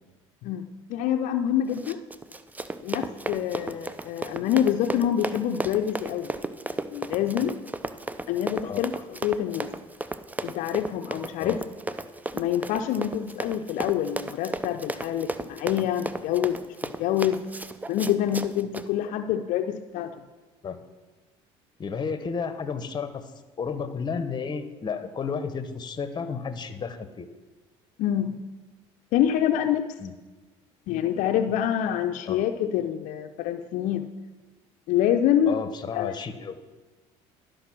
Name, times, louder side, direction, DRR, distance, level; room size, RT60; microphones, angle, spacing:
voice 1, 0.4-2.0 2.8-6.3 6.9-7.6 8.3-9.7 10.4-11.6 12.3-17.4 17.9-20.1 28.0-28.4 29.1-29.9 30.9-34.1 34.9-35.5 35.9-36.2, left 10 dB, 70° left, 6 dB, 0.5 m, -26 dB
Run, 1.7-18.9, right 2 dB, 10° right, 0.5 m, -34 dB
voice 2, 21.8-23.2 23.6-27.3 30.0-30.1 32.3-32.4 35.4-36.6, left 6 dB, 30° left, 11 dB, 0.9 m, -32 dB
12.0 x 5.1 x 6.0 m, 1.2 s
supercardioid pair, 80°, 14 cm